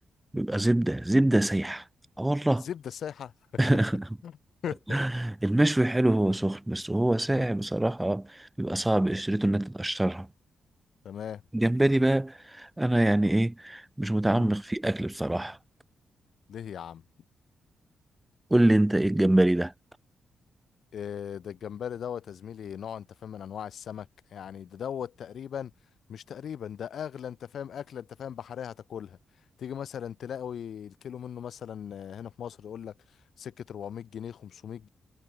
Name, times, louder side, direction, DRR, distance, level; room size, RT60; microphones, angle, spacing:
voice 1, 0.3-1.8 2.2-2.7 3.6-4.0 4.9-8.3 8.6-10.3 11.5-15.6 18.5-19.7, right 1 dB, 15° right, 5.0 m, -25 dB
voice 2, 2.6-3.6 4.2-4.4 4.6-5.0 11.0-11.4 14.3-14.5 16.5-17.0 20.9-25.7 26.1-29.2 29.6-34.9, left 8 dB, 70° left, 7.9 m, -38 dB
supercardioid pair, 50°, 0 cm